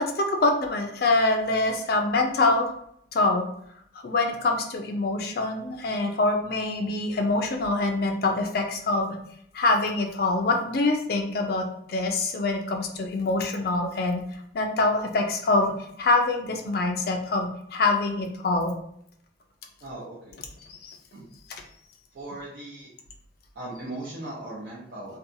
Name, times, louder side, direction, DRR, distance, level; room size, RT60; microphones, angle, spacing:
voice 1, 0.0-2.7 3.1-3.5 4.0-9.2 9.5-14.2 14.5-18.7 20.6-21.0, left 2 dB, 55° left, 3 dB, 0.4 m, -25 dB
voice 2, 19.8-20.4 21.1-21.3 22.1-22.9 23.5-25.2, right 1 dB, 65° right, -8 dB, 0.7 m, -38 dB
2.7 x 2.2 x 2.6 m, 0.69 s
head